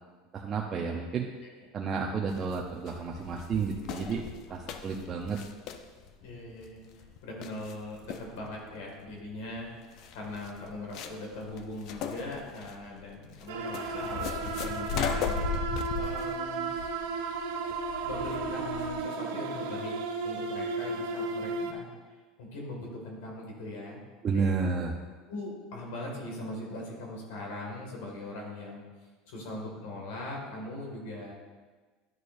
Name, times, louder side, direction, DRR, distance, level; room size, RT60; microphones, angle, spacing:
voice 1, 0.3-1.3 1.7-5.4 24.2-24.9, right 5 dB, 35° right, 0 dB, 0.7 m, -31 dB
sound 1, 2.3-19.1, left 6 dB, 60° left, 0.6 m, -38 dB
voice 2, 6.2-6.8 7.2-9.7 10.1-15.4 15.9-16.7 18.0-19.9 20.2-21.9 22.4-24.0 24.3-24.5 25.3-28.8 29.3-31.3, left 1 dB, 80° left, -1 dB, 2.1 m, -40 dB
sound 2, 13.5-21.7, right 4 dB, 85° right, 0.8 m, -34 dB
11.0 x 6.6 x 2.6 m, 1.4 s
supercardioid pair, 120°, 0 cm